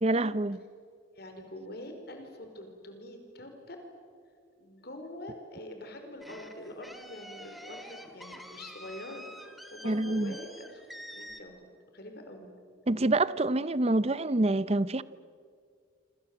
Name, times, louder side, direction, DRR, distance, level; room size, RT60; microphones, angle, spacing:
voice 1, 0.0-0.6 9.8-10.3 12.9-15.0, right 2 dB, 30° right, 17 dB, 0.7 m, -26 dB
voice 2, 1.1-3.8 4.6-9.2 9.7-11.5 11.9-12.5, left 1 dB, 55° left, 5 dB, 4.9 m, -44 dB
sound 1, 6.2-11.4, equal, ahead, 1.9 m, -47 dB
27.0 x 26.5 x 7.9 m, 2.2 s
head